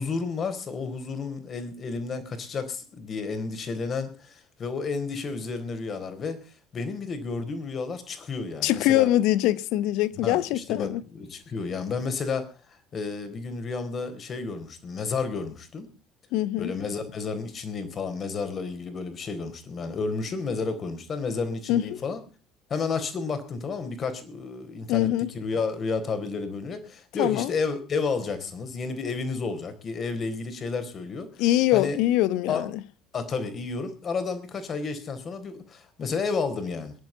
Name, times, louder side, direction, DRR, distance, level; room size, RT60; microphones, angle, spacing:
voice 1, 0.0-6.4 6.7-9.1 10.1-15.9 16.6-22.2 22.7-31.4 31.7-32.0 32.5-32.6 33.1-36.9, left 4 dB, 40° left, 4.0 m, -31 dB
voice 2, 8.6-11.0 16.3-16.7 21.7-22.0 24.9-25.3 27.2-27.5 31.4-32.7, left 14 dB, 65° left, 1.0 m, -23 dB
22.0 x 11.0 x 3.9 m
hypercardioid pair, 60°, 0 cm